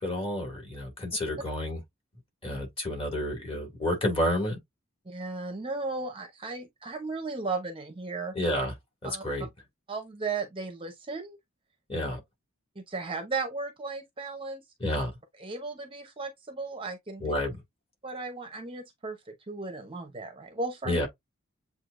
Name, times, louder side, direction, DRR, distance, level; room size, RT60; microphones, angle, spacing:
voice 1, 0.0-1.8 2.4-4.5 8.3-8.7 9.0-9.5 11.9-12.2 14.8-15.1 17.2-17.6 20.9-21.1, left 1 dB, 25° left, 2.3 m, -30 dB
voice 2, 5.1-8.3 9.0-9.2 9.9-11.4 11.9-12.0 12.8-14.6 15.4-17.2 18.0-21.0, right 3 dB, 25° right, 0.8 m, -35 dB
7.8 x 2.6 x 2.5 m
head